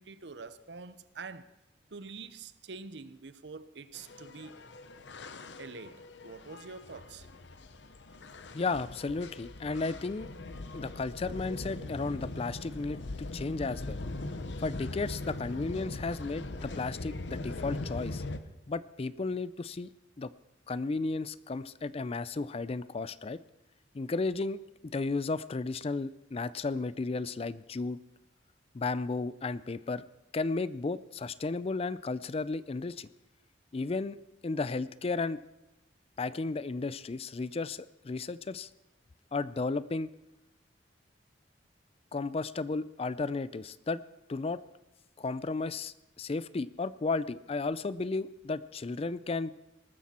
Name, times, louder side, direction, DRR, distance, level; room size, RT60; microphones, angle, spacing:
voice 1, 0.0-1.5 1.9-4.6 5.6-7.3, right 4 dB, 65° right, 0.8 m, -46 dB
sound 1, 3.9-18.4, left 2 dB, 75° left, 0.9 m, -41 dB
voice 2, 8.5-10.3 10.7-13.0 13.3-14.0 14.6-18.2 18.7-19.9 20.2-20.3 20.7-23.4 23.9-24.6 24.9-28.0 28.7-30.0 30.3-33.1 33.7-34.2 34.4-35.4 36.2-38.7 39.3-40.1 42.1-44.0 44.3-44.6 45.2-49.5, left 3 dB, 35° left, 0.4 m, -34 dB
19.0 x 13.5 x 4.3 m
head